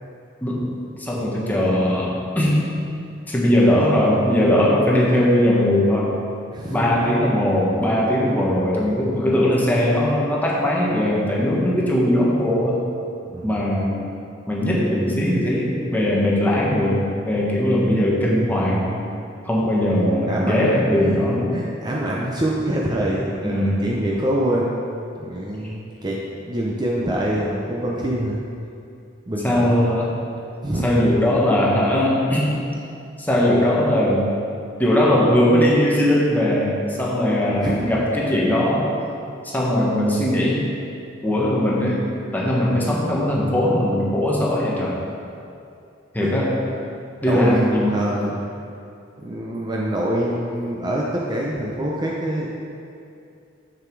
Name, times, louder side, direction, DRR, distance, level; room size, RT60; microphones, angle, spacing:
voice 1, 0.4-0.7 1.0-2.8 3.3-6.1 6.7-12.8 13.4-14.0 14.5-19.0 19.4-21.5 23.4-23.8 29.4-30.1 30.8-32.6 33.2-34.3 34.8-38.9 39.4-40.7 41.2-42.1 42.3-45.0 46.1-46.6 47.2-47.9, left 1 dB, 10° left, -5 dB, 1.3 m, -19 dB
voice 2, 6.5-6.8 13.3-13.7 20.3-21.2 21.5-24.8 25.2-26.2 26.5-28.4 29.3-29.8 30.6-30.9 37.6-37.8 39.3-39.4 46.2-46.3 47.3-48.4 49.2-52.5, right 1 dB, 25° right, -3 dB, 0.7 m, -25 dB
7.0 x 6.7 x 4.6 m, 2.6 s
head